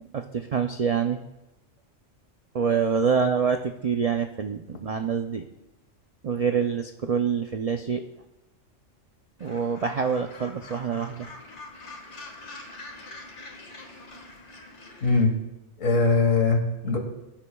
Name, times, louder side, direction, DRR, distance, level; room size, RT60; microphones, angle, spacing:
voice 1, 0.1-1.2 2.5-5.5 6.2-8.0 9.4-11.3, right 6 dB, 75° right, 6 dB, 0.3 m, -26 dB
Gull seagull, 9.4-15.2, left 2 dB, 60° left, 1.9 m, -44 dB
voice 2, 15.0-15.3 15.8-17.0, left 3 dB, 80° left, 4 dB, 1.9 m, -21 dB
19.0 x 9.8 x 2.3 m, 0.97 s
omnidirectional pair, 1.3 m